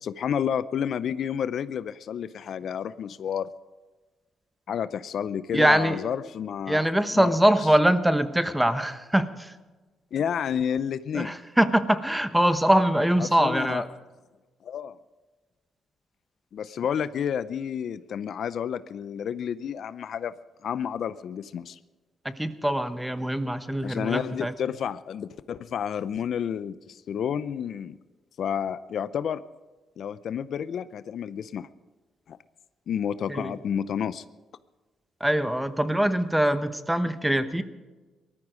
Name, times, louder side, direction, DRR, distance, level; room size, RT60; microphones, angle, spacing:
voice 1, 0.0-3.5 4.7-7.4 10.1-11.4 13.2-13.8 14.6-15.0 16.5-20.3 20.6-21.8 23.8-28.0 28.4-29.4 30.0-31.7 32.3-32.4 32.9-34.2, left 8 dB, 65° left, 15 dB, 0.5 m, -30 dB
voice 2, 5.5-6.0 6.7-9.5 11.1-13.9 22.2-24.5 33.3-33.6 35.2-37.6, right 1 dB, 5° right, 11 dB, 1.0 m, -23 dB
19.0 x 13.5 x 5.1 m, 1.2 s
cardioid pair, 90°, 0 cm